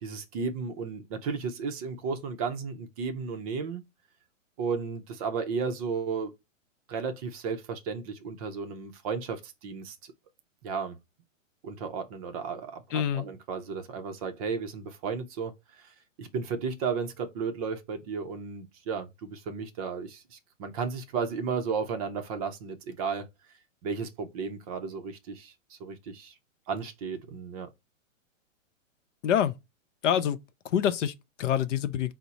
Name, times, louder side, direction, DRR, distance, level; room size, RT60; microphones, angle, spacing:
voice 1, 0.0-3.8 4.6-6.3 6.9-10.1 10.6-11.0 11.6-23.3 23.8-26.3 26.7-27.7, right 5 dB, 30° right, 0.5 m, -34 dB
voice 2, 12.9-13.3 29.2-29.5 30.0-30.4 30.6-32.1, left 9 dB, 65° left, 0.6 m, -26 dB
4.4 x 2.0 x 3.9 m
hypercardioid pair, 135°, 39 cm